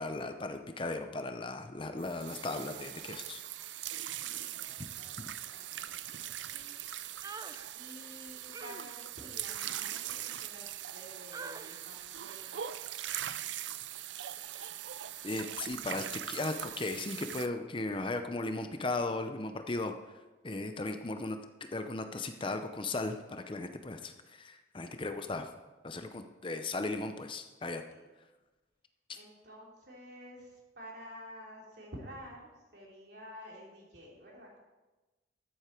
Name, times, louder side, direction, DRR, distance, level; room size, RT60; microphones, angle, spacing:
voice 1, 0.0-3.4 5.2-5.3 15.2-19.9 20.4-21.4 21.7-25.5 25.8-27.8, left 2 dB, 30° left, 7 dB, 0.6 m, -36 dB
voice 2, 1.9-2.7 4.1-6.8 7.7-10.0 10.4-12.7 27.9-28.0 29.2-34.6, equal, 60° right, -2 dB, 3.3 m, -51 dB
sound 1, 2.0-17.5, right 11 dB, 80° right, 0.5 m, -41 dB
sound 2, 7.2-7.7 8.5-11.0 11.3-11.9 12.3-12.6 13.0-13.3, right 4 dB, 20° right, 0.3 m, -48 dB
13.5 x 8.2 x 4.5 m, 1.1 s
head